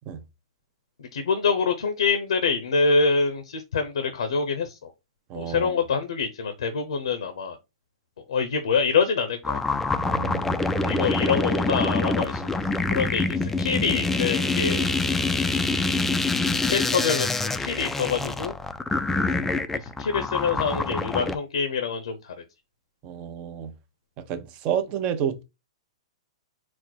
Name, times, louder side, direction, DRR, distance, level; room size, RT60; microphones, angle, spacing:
voice 1, 1.0-4.9 5.3-7.6 8.3-9.6 10.7-12.6 12.9-14.9 16.6-17.3 17.6-18.5 19.7-22.4, left 5 dB, 75° left, 0.6 m, -25 dB
voice 2, 5.3-5.7 10.0-10.6 11.0-11.1 23.0-23.7 24.2-25.4, right 8 dB, 35° right, 0.6 m, -30 dB
sound 1, 9.4-21.4, left 3 dB, 10° left, 0.3 m, -25 dB
4.2 x 2.1 x 4.4 m
hypercardioid pair, 120°, 3 cm